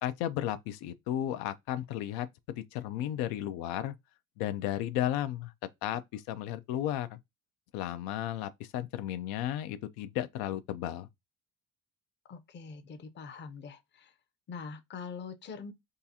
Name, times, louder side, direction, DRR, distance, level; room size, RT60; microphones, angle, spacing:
voice 1, 0.0-3.9 4.4-5.5 5.8-7.2 7.7-11.1, left 12 dB, 90° left, 0.5 m, -34 dB
voice 2, 12.3-14.1 14.5-15.7, left 5 dB, 30° left, 0.5 m, -43 dB
3.7 x 2.4 x 2.7 m
cardioid pair, 120°, 35 cm